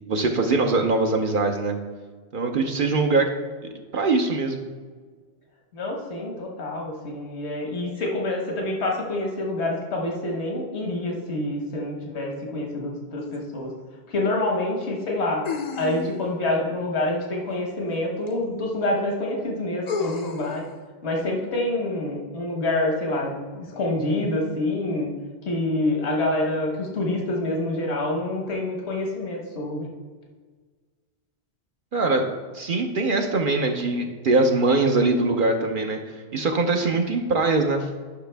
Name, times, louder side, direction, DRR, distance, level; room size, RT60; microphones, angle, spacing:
voice 1, 0.1-1.8 2.3-3.3 3.9-4.6 31.9-32.3 32.5-36.0 36.3-37.9, right 3 dB, 55° right, 3 dB, 0.8 m, -22 dB
voice 2, 5.7-13.7 14.1-15.4 15.7-20.7 21.0-25.1 25.4-29.9, left 1 dB, 80° left, 0 dB, 1.5 m, -27 dB
sound 1, 13.3-13.4 15.5-16.4 18.3-18.4 19.9-20.6, left 4 dB, 45° left, 0.6 m, -31 dB
9.9 x 5.8 x 3.4 m, 1.5 s
omnidirectional pair, 1.1 m